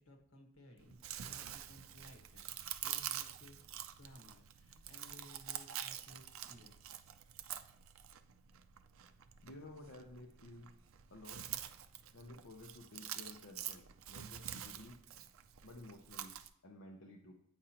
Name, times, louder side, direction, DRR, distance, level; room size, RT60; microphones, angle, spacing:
voice 1, 0.0-3.7 4.0-6.8, left 1 dB, 90° left, 3 dB, 1.4 m, -59 dB
Chewing mastication, 0.8-16.5, right 11 dB, 75° right, 0.4 m, -47 dB
voice 2, 9.4-10.7 11.1-11.4 12.1-15.0 15.6-16.4 16.6-17.3, left 1 dB, 70° left, 0 dB, 0.7 m, -53 dB
8.9 x 4.9 x 2.9 m, 0.74 s
head